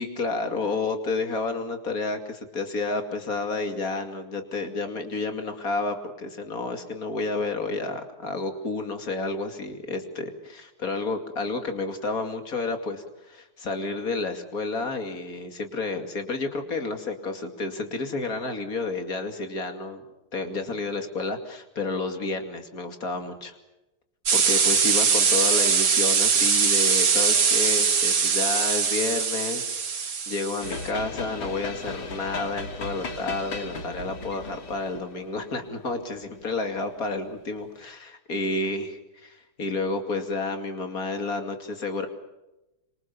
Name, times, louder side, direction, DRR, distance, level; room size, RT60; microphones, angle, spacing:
voice 1, 0.0-20.0 20.3-23.5 24.3-42.1, left 3 dB, 45° left, 6 dB, 3.0 m, -30 dB
sound 1, 24.3-30.9, right 6 dB, 75° right, 2.8 m, -22 dB
sound 2, 30.6-36.9, left 3 dB, 85° left, 3.4 m, -37 dB
26.0 x 25.5 x 7.1 m, 0.97 s
omnidirectional pair, 2.2 m